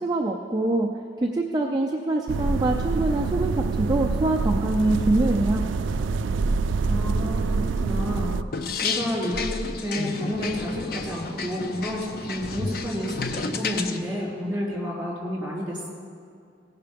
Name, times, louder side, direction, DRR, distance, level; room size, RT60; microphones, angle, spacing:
voice 1, 0.0-0.9 1.2-5.6, right 2 dB, 20° right, 0 dB, 0.5 m, -24 dB
sound 1, 2.3-8.4, right 4 dB, 85° right, 0.3 m, -25 dB
voice 2, 6.9-8.3 8.8-15.9, equal, ahead, -8 dB, 3.1 m, -30 dB
sound 2, 8.5-14.0, left 4 dB, 50° left, 0.5 m, -31 dB
16.5 x 5.8 x 5.2 m, 2.4 s
head